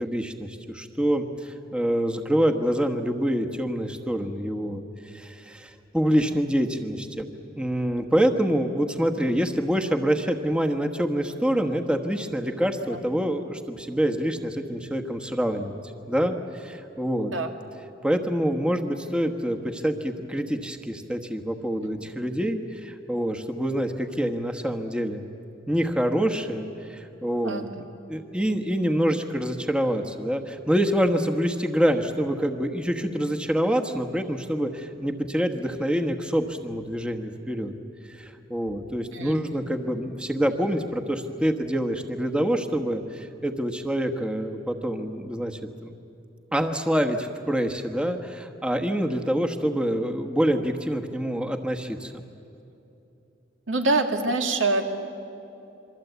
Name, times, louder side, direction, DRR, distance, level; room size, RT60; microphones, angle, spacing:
voice 1, 0.0-17.3 18.0-25.3 25.7-27.6 28.1-37.7 38.1-45.9 46.5-52.2, equal, 5° right, 4 dB, 1.2 m, -26 dB
voice 2, 39.1-39.6 53.7-54.8, right 2 dB, 90° right, 4 dB, 2.2 m, -25 dB
27.0 x 24.0 x 8.2 m, 2.9 s
head